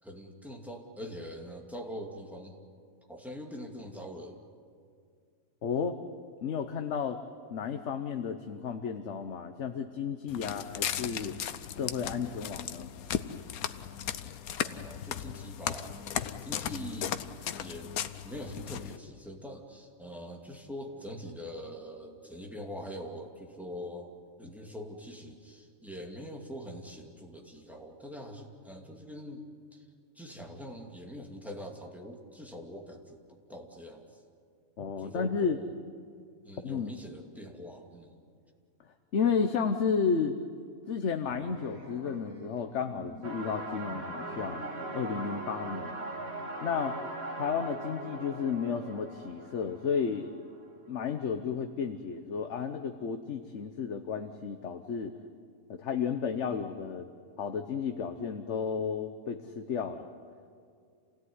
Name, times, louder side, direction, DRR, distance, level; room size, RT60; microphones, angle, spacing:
voice 1, 0.0-2.6 3.1-4.4 14.6-16.0 16.4-17.2 17.6-17.9 18.2-24.1 24.4-29.4 29.7-29.9 30.1-34.2 35.0-35.7 36.4-38.2, equal, ahead, 1 dB, 2.4 m, -43 dB
voice 2, 5.6-6.0 6.4-7.2 7.5-11.3 11.8-12.9 34.8-35.6 36.6-36.9 39.1-40.4 40.9-46.1 46.6-47.0 47.4-50.3 50.9-55.1 55.7-57.1 57.4-60.1, left 6 dB, 55° left, 7 dB, 1.2 m, -32 dB
Walk footsteps, 10.3-19.0, left 9 dB, 85° left, 1.3 m, -36 dB
sound 1, 41.3-45.2, right 1 dB, 85° right, 3.7 m, -48 dB
sound 2, 43.2-50.8, right 2 dB, 45° right, 2.2 m, -40 dB
28.0 x 17.0 x 9.6 m, 2.3 s
omnidirectional pair, 1.5 m